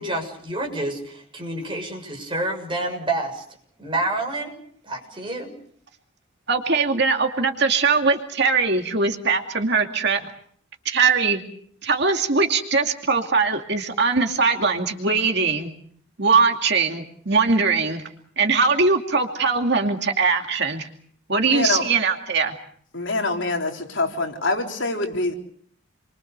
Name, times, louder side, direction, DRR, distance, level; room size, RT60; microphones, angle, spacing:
voice 1, 0.0-3.4 3.8-4.5 4.8-5.5, right 2 dB, 25° right, 3 dB, 6.7 m, -28 dB
voice 2, 6.5-10.2 10.8-11.4 11.8-15.7 16.2-18.0 18.4-20.9 21.3-22.5, right 4 dB, 55° right, 4 dB, 2.4 m, -21 dB
voice 3, 21.5-21.9 22.9-25.3, left 2 dB, 60° left, 2 dB, 4.2 m, -25 dB
29.5 x 24.0 x 6.7 m, 0.62 s
head